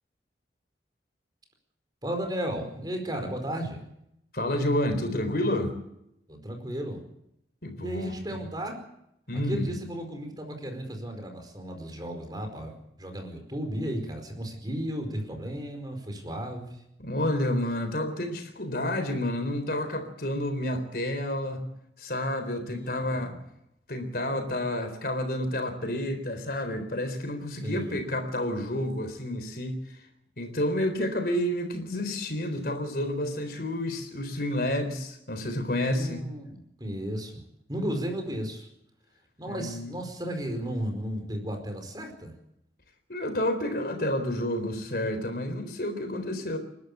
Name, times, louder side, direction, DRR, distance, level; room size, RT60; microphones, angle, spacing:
voice 1, 2.0-3.8 6.3-7.0 7.8-8.8 9.3-16.8 22.7-23.4 27.6-28.0 35.9-37.4 37.7-38.7 39.4-42.3, right 1 dB, 25° right, 4 dB, 4.7 m, -34 dB
voice 2, 4.3-5.7 7.6-8.4 9.3-9.7 17.0-21.6 22.0-23.3 23.9-30.0 30.4-36.2 37.8-37.9 39.5-39.9 43.1-46.6, left 1 dB, 55° left, 7 dB, 4.0 m, -30 dB
29.5 x 12.0 x 8.5 m, 0.80 s
head